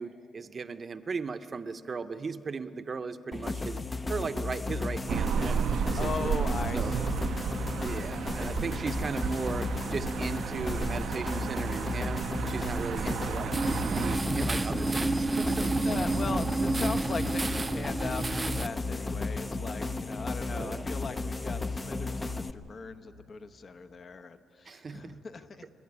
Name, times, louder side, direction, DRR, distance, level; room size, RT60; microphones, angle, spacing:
voice 1, 0.0-3.8 4.1-6.4 6.7-6.9 7.8-13.5 13.9-16.1 20.5-20.9 24.7-25.2, right 4 dB, 40° right, 9 dB, 0.8 m, -37 dB
sound 1, 3.3-22.5, left 3 dB, 25° left, 0.7 m, -34 dB
sound 2, 5.1-14.2, right 8 dB, 70° right, 0.6 m, -33 dB
voice 2, 5.9-7.2 15.8-25.7, left 4 dB, 45° left, 9 dB, 1.1 m, -39 dB
sound 3, 13.5-18.7, right 3 dB, 25° right, 0.4 m, -30 dB
27.5 x 11.5 x 9.6 m, 2.6 s
cardioid pair, 90°, 0 cm